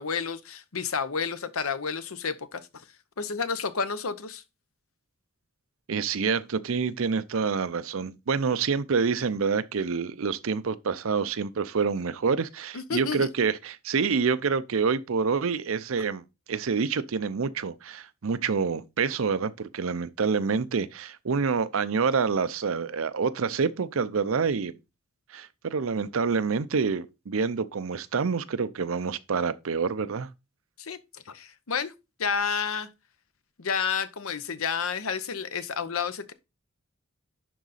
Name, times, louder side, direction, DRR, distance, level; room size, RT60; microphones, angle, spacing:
voice 1, 0.0-2.6 3.2-4.4 12.7-13.3 30.8-31.9 32.2-32.9 33.6-36.3, left 6 dB, 80° left, 0.8 m, -30 dB
voice 2, 5.9-16.2 16.5-24.7 25.3-30.3, right 5 dB, 75° right, 0.6 m, -27 dB
11.0 x 3.9 x 4.1 m
head